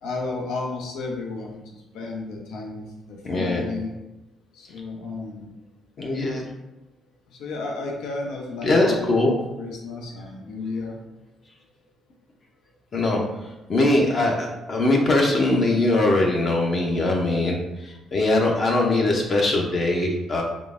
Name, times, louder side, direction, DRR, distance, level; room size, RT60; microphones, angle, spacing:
voice 1, 0.0-3.9 4.5-5.5 7.3-9.1 9.6-11.0, left 3 dB, 85° left, 0 dB, 0.7 m, -33 dB
voice 2, 3.2-3.7 6.0-6.4 8.6-9.5 12.9-20.4, left 2 dB, 35° left, 0 dB, 0.5 m, -21 dB
3.6 x 3.4 x 2.5 m, 0.99 s
cardioid pair, 140°, 0 cm